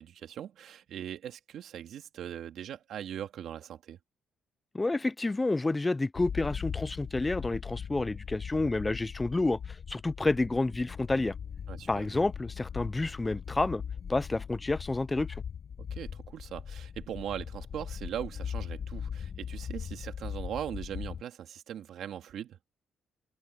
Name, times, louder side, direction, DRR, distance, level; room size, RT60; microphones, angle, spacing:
voice 1, 0.0-4.0 11.7-12.1 15.8-22.6, right 10 dB, 70° right, 2.2 m, -40 dB
voice 2, 4.7-11.3 11.9-13.8 14.1-15.4, left 2 dB, 20° left, 0.3 m, -29 dB
sound 1, 6.2-21.2, left 7 dB, 50° left, 0.8 m, -40 dB
cardioid pair, 90°, 0 cm